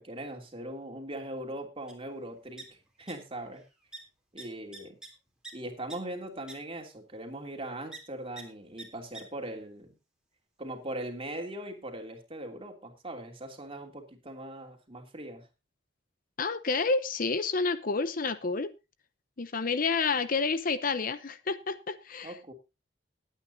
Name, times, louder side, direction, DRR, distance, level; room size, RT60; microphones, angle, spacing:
voice 1, 0.0-2.7 3.0-3.6 4.3-5.0 5.5-9.9 10.6-15.5 22.2-22.5, right 1 dB, 30° right, 2.9 m, -40 dB
sound 1, 1.9-2.0 2.2-3.1 3.4-3.6 3.9-4.0 4.4-5.5 5.9-6.0 6.5-6.6 7.9-8.0 8.4-8.5 8.8-8.9 9.1-9.2, right 3 dB, 5° right, 3.4 m, -45 dB
voice 2, 16.4-18.7 19.4-22.3, left 4 dB, 45° left, 0.8 m, -29 dB
20.0 x 9.2 x 2.7 m
head